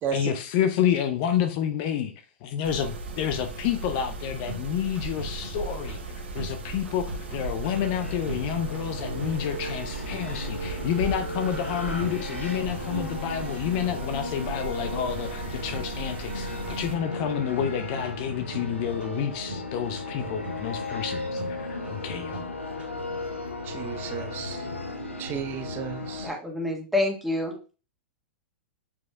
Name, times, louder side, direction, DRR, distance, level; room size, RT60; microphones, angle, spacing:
voice 1, 0.1-2.1 2.4-22.4, left 9 dB, 45° left, 0.7 m, -29 dB
Mechanisms, 2.6-16.9, right 3 dB, 70° right, 2.0 m, -37 dB
sound 1, 3.8-23.1, right 2 dB, 15° right, 2.1 m, -44 dB
sound 2, 7.6-26.3, left 2 dB, 90° left, 1.0 m, -35 dB
voice 2, 23.6-24.6 25.2-26.3, right 8 dB, 30° right, 0.8 m, -33 dB
voice 3, 26.2-27.7, left 2 dB, ahead, 1.7 m, -28 dB
7.4 x 6.2 x 2.3 m
figure-of-eight pair, 100°, 7 cm